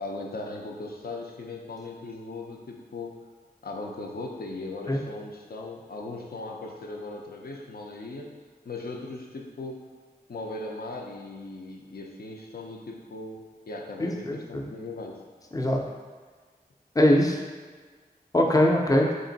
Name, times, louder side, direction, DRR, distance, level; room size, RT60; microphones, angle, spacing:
voice 1, 0.0-3.2 3.6-8.3 8.6-9.9 10.3-15.2, left 2 dB, 70° left, 1 dB, 0.6 m, -38 dB
voice 2, 14.0-14.6 15.5-15.8 17.0-17.4 18.3-19.1, left 1 dB, 20° left, 0 dB, 0.5 m, -22 dB
3.6 x 2.5 x 3.9 m, 1.5 s
wide cardioid pair, 65°, 16 cm